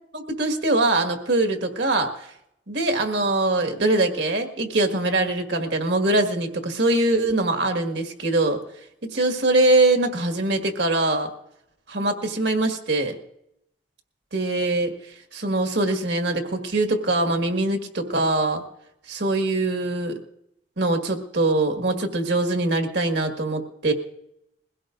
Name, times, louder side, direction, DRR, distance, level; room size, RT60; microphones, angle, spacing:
voice 1, 0.1-2.1 2.7-8.6 9.1-11.3 11.9-13.1 14.3-14.9 15.3-18.6 19.1-20.1 20.8-23.9, right 2 dB, 75° right, 4 dB, 1.8 m, -22 dB
22.0 x 16.5 x 2.6 m, 0.79 s
head